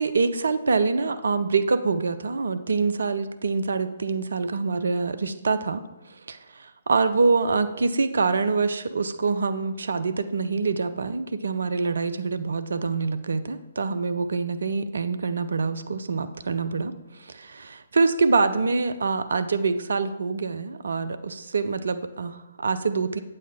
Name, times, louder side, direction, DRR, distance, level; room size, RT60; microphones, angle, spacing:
voice 1, 0.0-5.8 6.3-16.9 17.2-23.2, right 4 dB, 70° right, 12 dB, 0.5 m, -25 dB
8.4 x 7.7 x 3.5 m, 1.0 s
figure-of-eight pair, 135°, 0 cm